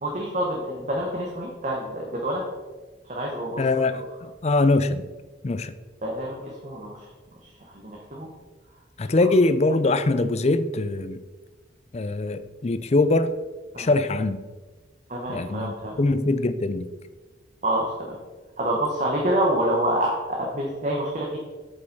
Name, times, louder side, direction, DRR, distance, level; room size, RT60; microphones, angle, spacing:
voice 1, 0.0-2.4 3.1-3.6 3.9-4.0 6.0-7.1 7.7-8.3 9.2-9.3 13.7-13.9 15.1-16.0 17.6-18.2 18.6-21.4, right 1 dB, 40° right, -1 dB, 1.2 m, -27 dB
voice 2, 3.6-5.1 5.4-5.7 9.0-11.2 11.9-13.3 13.8-14.4 15.3-16.9, left 2 dB, 35° left, 12 dB, 0.5 m, -23 dB
8.1 x 5.5 x 5.3 m, 1.3 s
head